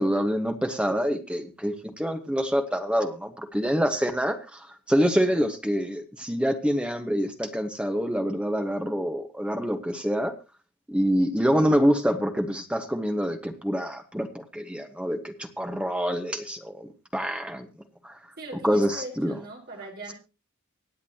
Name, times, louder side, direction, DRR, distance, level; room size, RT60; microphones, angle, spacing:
voice 1, 0.0-10.3 10.9-17.7 18.0-18.2 18.6-19.4, equal, 5° right, 6 dB, 1.3 m, -26 dB
voice 2, 18.4-20.1, right 1 dB, 45° right, 0 dB, 4.8 m, -40 dB
24.5 x 8.5 x 2.9 m, 0.29 s
head